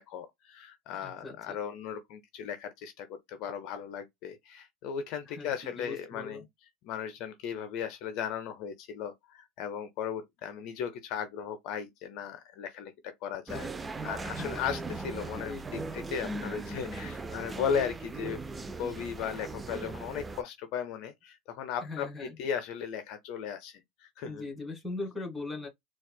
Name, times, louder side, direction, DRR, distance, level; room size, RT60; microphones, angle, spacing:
voice 1, 0.0-6.5 6.8-18.4 18.8-24.4, left 7 dB, 60° left, 0.5 m, -36 dB
voice 2, 1.0-1.6 5.3-6.4 14.4-14.6 15.3-15.8 21.8-22.3 24.2-25.7, left 3 dB, 10° left, 1.6 m, -40 dB
sound 1, 13.5-20.4, right 3 dB, 20° right, 0.3 m, -38 dB
4.1 x 2.3 x 2.2 m
hypercardioid pair, 90°, 0 cm